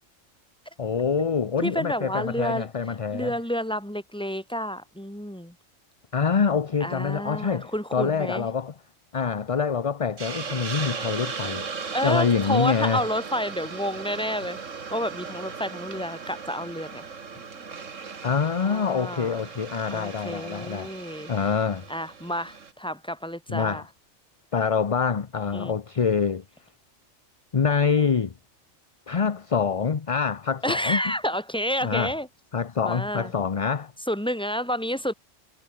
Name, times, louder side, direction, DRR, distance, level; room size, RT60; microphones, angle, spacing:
voice 1, 0.8-3.3 6.1-8.7 9.1-11.7 12.0-13.0 18.2-20.9 21.3-21.9 23.5-23.8 24.5-26.4 27.5-28.3 29.1-31.0 31.8-32.1 32.5-33.9, left 6 dB, 35° left, 0.7 m, -25 dB
voice 2, 1.6-2.7 3.1-5.5 6.8-8.5 11.9-14.6 14.9-17.0 18.3-19.4 19.9-21.3 21.9-23.8 25.5-25.7 30.6-32.3 32.8-33.3 34.1-35.1, equal, 5° left, 3.9 m, -30 dB
Hiss, 10.2-22.7, right 5 dB, 75° right, 2.2 m, -37 dB
omnidirectional pair, 1.3 m